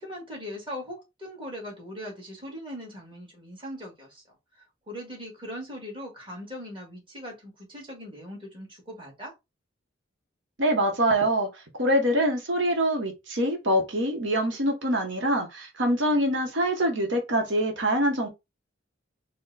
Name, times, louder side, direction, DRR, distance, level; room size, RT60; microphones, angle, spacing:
voice 1, 0.0-4.2 4.6-9.3, equal, 25° right, 1.9 m, -40 dB
voice 2, 10.6-11.5 11.8-18.3, right 1 dB, 70° right, 1.0 m, -24 dB
4.4 x 2.2 x 3.9 m
head